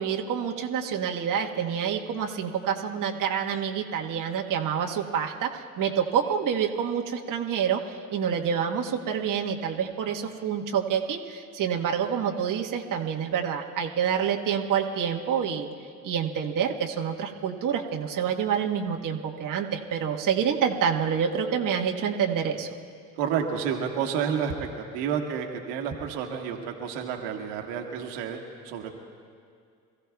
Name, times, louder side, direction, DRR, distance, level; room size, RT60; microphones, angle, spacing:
voice 1, 0.0-15.7 16.0-22.7, right 7 dB, 45° right, 1 dB, 1.5 m, -27 dB
voice 2, 23.2-28.9, right 7 dB, 70° right, 2 dB, 1.7 m, -30 dB
27.5 x 15.5 x 2.4 m, 2.2 s
hypercardioid pair, 60°, 42 cm